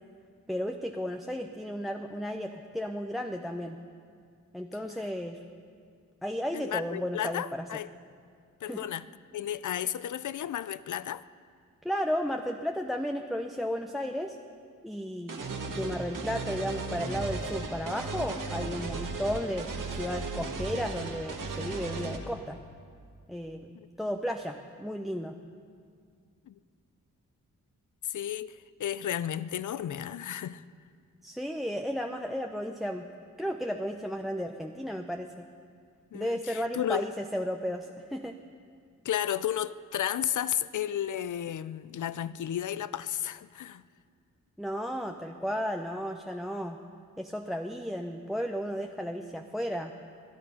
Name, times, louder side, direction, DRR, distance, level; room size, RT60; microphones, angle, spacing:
voice 1, 0.5-3.8 4.5-5.4 6.2-7.7 8.6-8.9 11.8-14.4 14.8-22.6 23.3-25.3 31.2-33.1 33.4-35.5 36.1-38.3 44.6-46.8 47.2-49.9, equal, ahead, 0.8 m, -34 dB
voice 2, 6.5-7.9 8.6-9.1 9.3-11.2 23.7-23.9 26.5-26.6 28.0-30.6 36.1-37.0 39.0-43.8, left 10 dB, 65° left, 0.5 m, -33 dB
sound 1, 15.3-22.2, right 3 dB, 70° right, 1.7 m, -36 dB
21.5 x 10.5 x 5.7 m
cardioid pair, 65°, 33 cm